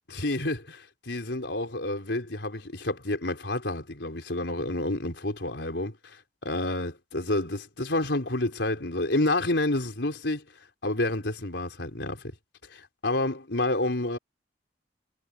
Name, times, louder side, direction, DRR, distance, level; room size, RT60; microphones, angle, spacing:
voice 1, 0.1-6.2 6.4-10.4 10.8-12.2 12.7-14.2, left 2 dB, 85° left, 3.9 m, -29 dB
head